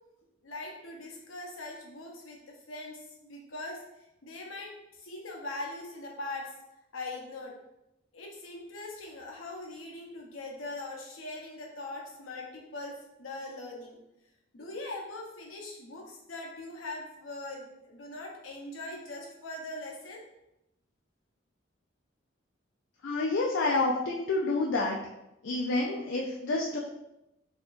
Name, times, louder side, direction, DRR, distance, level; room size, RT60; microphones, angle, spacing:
voice 1, 0.4-6.5 6.9-7.5 8.1-14.0 14.5-20.2, left 2 dB, 90° left, 0 dB, 0.8 m, -41 dB
voice 2, 23.0-25.0 25.4-26.8, left 2 dB, 65° left, -2 dB, 0.4 m, -28 dB
4.2 x 2.8 x 2.5 m, 0.89 s
head